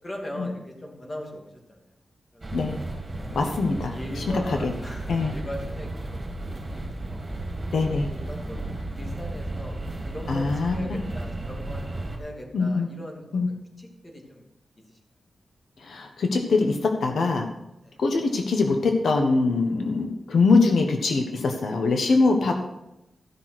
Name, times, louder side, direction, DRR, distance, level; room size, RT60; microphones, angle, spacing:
voice 1, 0.0-1.8 2.3-2.7 3.1-3.5 3.9-6.3 6.6-7.2 7.9-9.8 10.0-14.4 17.8-17.9, left 1 dB, 30° left, 0 dB, 2.6 m, -40 dB
sound 1, 2.4-12.2, right 2 dB, 30° right, 2.8 m, -34 dB
voice 2, 3.3-4.7 5.1-5.3 7.7-8.1 10.3-11.0 12.5-12.9 13.3-13.5 15.8-17.5 18.0-22.5, left 3 dB, 85° left, 4 dB, 1.2 m, -23 dB
14.5 x 6.2 x 6.1 m, 0.89 s
wide cardioid pair, 115°, 0 cm